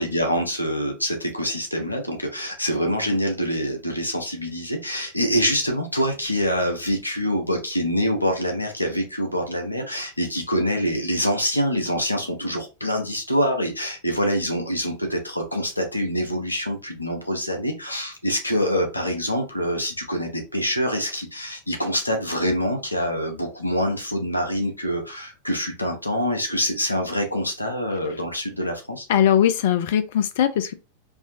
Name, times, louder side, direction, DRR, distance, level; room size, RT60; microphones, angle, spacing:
voice 1, 0.0-29.1, equal, 85° left, 0.8 m, -25 dB
voice 2, 29.1-30.7, left 10 dB, 55° left, 0.3 m, -20 dB
4.6 x 2.7 x 2.7 m
figure-of-eight pair, 90°, 0 cm